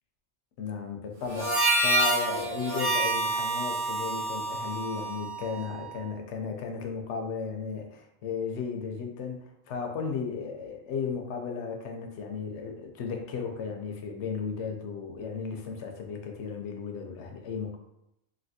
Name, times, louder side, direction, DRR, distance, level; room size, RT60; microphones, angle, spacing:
voice 1, 0.6-17.8, left 5 dB, 70° left, 3 dB, 0.8 m, -35 dB
Harmonica, 1.3-5.9, right 2 dB, 70° right, 1.1 m, -28 dB
3.2 x 2.7 x 2.7 m, 0.83 s
omnidirectional pair, 1.3 m